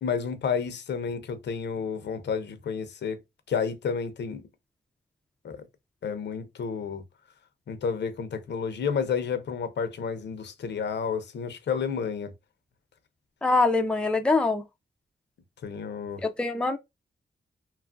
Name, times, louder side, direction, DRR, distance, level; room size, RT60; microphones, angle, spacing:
voice 1, 0.0-3.2 3.5-4.4 5.4-5.6 6.0-7.0 7.7-12.3 15.6-16.2, left 6 dB, 80° left, 0.6 m, -31 dB
voice 2, 13.4-14.6 16.4-16.8, left 3 dB, 5° left, 0.4 m, -23 dB
2.9 x 2.4 x 2.4 m
wide cardioid pair, 150°, 18 cm